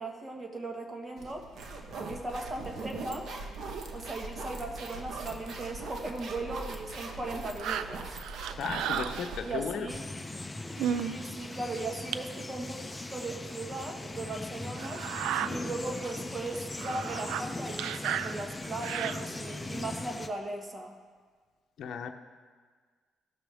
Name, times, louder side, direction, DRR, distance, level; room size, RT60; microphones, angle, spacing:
voice 1, 0.0-1.5 2.0-3.3 3.9-8.2 9.4-10.0 10.9-15.1 15.4-21.0, right 2 dB, 25° right, 2 dB, 1.5 m, -38 dB
sound 1, 1.2-10.0, right 3 dB, 65° right, 1.1 m, -41 dB
sound 2, 7.6-9.7 10.4-10.5 10.8-11.2 11.6-11.7 12.1-12.2 13.2-13.3 13.8-13.9 14.8-15.5 16.0-16.2 16.5-19.5 20.1-20.2, right 9 dB, 90° right, 0.3 m, -34 dB
voice 2, 8.6-9.9 21.8-22.1, left 7 dB, 70° left, 5 dB, 0.7 m, -35 dB
sound 3, 9.9-20.3, left 2 dB, 15° left, 0.7 m, -39 dB
16.0 x 6.2 x 3.5 m, 1.5 s
cardioid pair, 90°, 0 cm